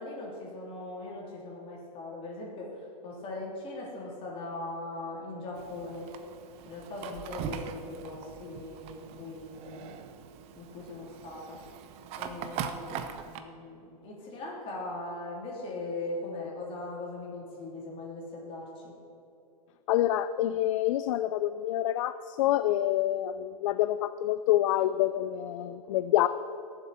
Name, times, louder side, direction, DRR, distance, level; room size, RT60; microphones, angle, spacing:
voice 1, 0.0-6.1 6.6-10.0 10.5-11.6 12.2-18.8, left 2 dB, 25° left, -3 dB, 3.3 m, -40 dB
Fire, 5.5-13.4, right 8 dB, 30° right, 0.7 m, -41 dB
voice 2, 19.9-26.3, left 13 dB, 55° left, 12 dB, 0.4 m, -27 dB
18.0 x 7.4 x 4.3 m, 2.8 s
hypercardioid pair, 140°, 20 cm